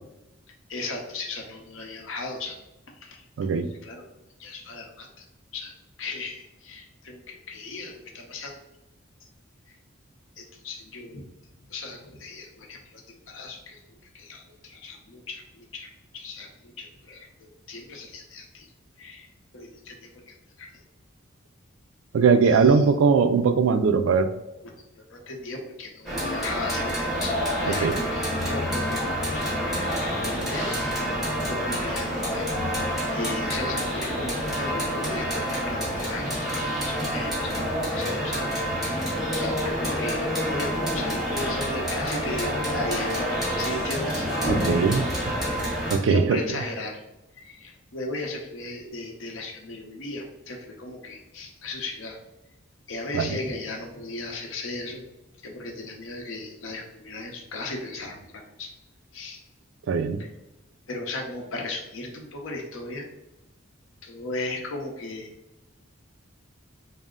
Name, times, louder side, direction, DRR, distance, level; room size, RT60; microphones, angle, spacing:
voice 1, 0.7-2.6 2.9-3.2 3.8-4.0 4.4-5.2 5.5-8.5 10.4-11.3 11.7-13.8 14.1-18.7 19.0-19.3 19.5-20.7 22.4-22.9 25.1-29.9 30.2-30.8 31.4-32.5 33.1-39.0 39.4-43.3 43.6-44.3 46.0-47.0 47.4-52.2 52.9-55.0 55.4-58.3 58.6-58.7 59.1-59.4 60.2-60.3 60.9-63.1 64.0-65.3, left 2 dB, 75° left, 2 dB, 0.7 m, -36 dB
voice 2, 22.1-24.3 27.8-27.9 44.5-45.1 45.9-46.4 53.1-53.3 59.9-60.2, right 5 dB, 70° right, 10 dB, 0.3 m, -20 dB
sound 1, 26.0-45.9, equal, ahead, 1.3 m, -27 dB
4.1 x 2.1 x 3.6 m, 0.96 s
head